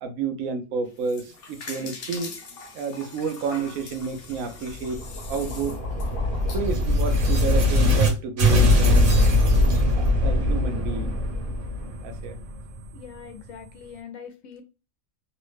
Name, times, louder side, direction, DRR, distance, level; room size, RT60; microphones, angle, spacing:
voice 1, 0.0-2.3 2.7-5.0 5.3-5.7 6.5-9.2 10.0-11.2 12.0-12.4, right 4 dB, 85° right, 1.0 m, -30 dB
sound 1, 0.9-7.5, left 3 dB, 55° left, 0.7 m, -41 dB
sound 2, 4.7-8.1 8.4-13.1, left 1 dB, 45° right, 0.9 m, -21 dB
voice 2, 12.9-14.6, left 7 dB, 80° left, 1.1 m, -42 dB
3.1 x 2.0 x 3.1 m
omnidirectional pair, 1.4 m